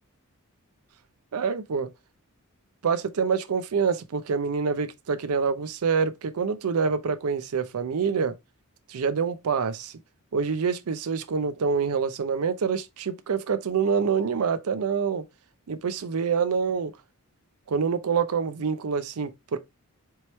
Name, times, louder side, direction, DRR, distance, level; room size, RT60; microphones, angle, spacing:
voice 1, 1.3-1.9 2.8-8.3 8.9-9.9 10.3-15.3 15.7-16.9 17.7-19.6, right 6 dB, 75° right, 0.5 m, -26 dB
4.5 x 3.0 x 3.0 m
head